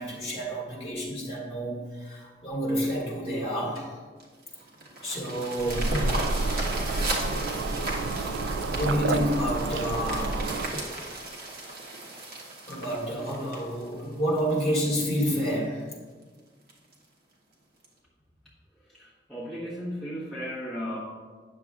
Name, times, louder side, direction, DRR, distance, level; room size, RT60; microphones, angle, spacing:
voice 1, 0.0-3.9 5.0-6.0 8.6-10.3 12.7-15.9, equal, 30° left, -4 dB, 2.0 m, -29 dB
sound 1, 4.2-14.7 15.3-15.4 15.8-15.9 16.2-16.3 16.7-17.0 17.8-17.9, right 2 dB, 55° right, 1.2 m, -36 dB
sound 2, 5.6-10.7, right 2 dB, 80° right, 0.4 m, -29 dB
voice 2, 18.8-21.0, equal, ahead, -10 dB, 1.1 m, -35 dB
8.9 x 6.7 x 2.4 m, 1.5 s
head